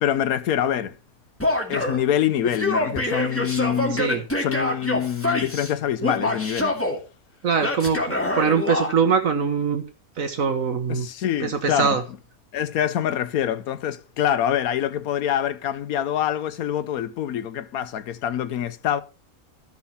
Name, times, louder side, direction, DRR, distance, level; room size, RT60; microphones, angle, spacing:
voice 1, 0.0-1.0 1.7-4.1 4.4-6.9 10.9-12.0 12.5-19.0, left 10 dB, 75° left, 1.3 m, -25 dB
Male speech man speaking / Yell, 1.4-2.0 2.4-5.7 6.0-7.0 7.6-8.9, left 1 dB, 10° left, 2.2 m, -25 dB
voice 2, 3.9-4.2 7.4-9.8 10.2-11.1 11.4-12.0, right 6 dB, 65° right, 1.6 m, -23 dB
13.0 x 6.0 x 5.7 m
omnidirectional pair, 1.5 m